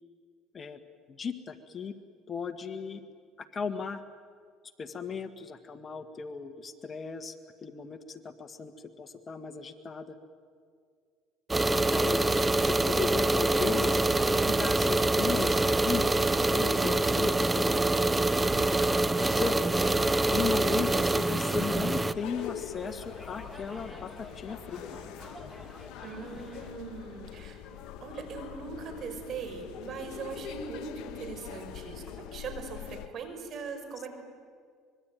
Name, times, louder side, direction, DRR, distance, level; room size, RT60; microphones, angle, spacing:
voice 1, 1.1-1.9 2.3-3.0 3.4-4.0 4.8-7.3 7.6-10.2 11.8-13.9 14.4-18.0 18.7-19.6 20.3-25.0, left 5 dB, 35° left, 9 dB, 1.7 m, -36 dB
sound 1, 11.5-22.1, right 2 dB, 15° right, 0.8 m, -25 dB
voice 2, 13.4-14.5 26.0-34.1, right 5 dB, 50° right, 6 dB, 5.6 m, -41 dB
sound 2, 18.5-33.1, left 10 dB, 70° left, 1.5 m, -44 dB
sound 3, 20.2-26.7, left 1 dB, 5° left, 3.3 m, -49 dB
25.0 x 22.5 x 9.3 m, 2.1 s
supercardioid pair, 90°, 0 cm